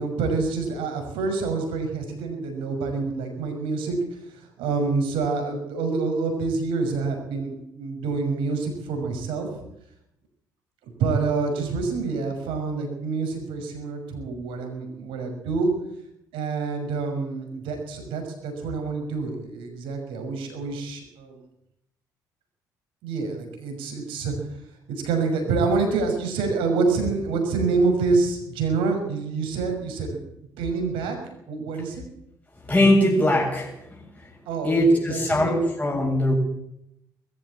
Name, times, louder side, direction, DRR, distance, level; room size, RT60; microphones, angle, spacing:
voice 1, 0.0-4.2 4.6-9.6 11.0-15.7 16.3-21.4 23.0-24.3 24.9-30.2 30.6-31.2 31.5-32.0 34.5-35.7, right 4 dB, 65° right, 4 dB, 6.1 m, -27 dB
voice 2, 32.7-33.7 34.6-36.3, left 1 dB, 15° left, -3 dB, 7.8 m, -20 dB
21.0 x 14.5 x 8.7 m, 0.79 s
figure-of-eight pair, 45°, 10 cm